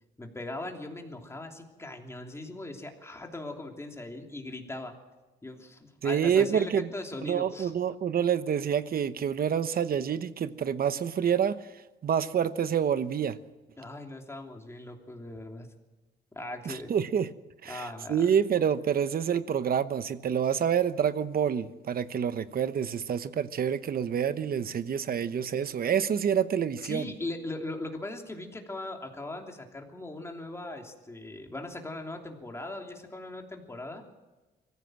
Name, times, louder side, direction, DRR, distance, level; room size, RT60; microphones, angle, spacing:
voice 1, 0.2-4.9 5.4-7.7 13.8-15.7 16.3-16.9 17.7-18.3 26.8-34.0, left 2 dB, 15° left, 2 dB, 3.1 m, -39 dB
voice 2, 6.0-6.9 7.2-11.6 12.0-13.4 16.7-17.3 17.6-27.1, right 8 dB, 55° right, 13 dB, 1.1 m, -27 dB
23.5 x 15.0 x 7.7 m, 1.1 s
cardioid pair, 130°, 19 cm